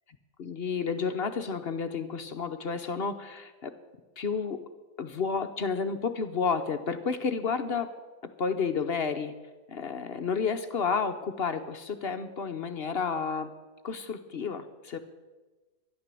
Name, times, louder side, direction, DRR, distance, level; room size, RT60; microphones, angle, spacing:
voice 1, 0.4-3.7 4.2-4.6 5.0-7.9 8.2-9.3 9.7-13.5 13.8-15.0, left 5 dB, 50° left, 8 dB, 0.9 m, -31 dB
12.0 x 11.0 x 7.6 m, 1.3 s
omnidirectional pair, 1.5 m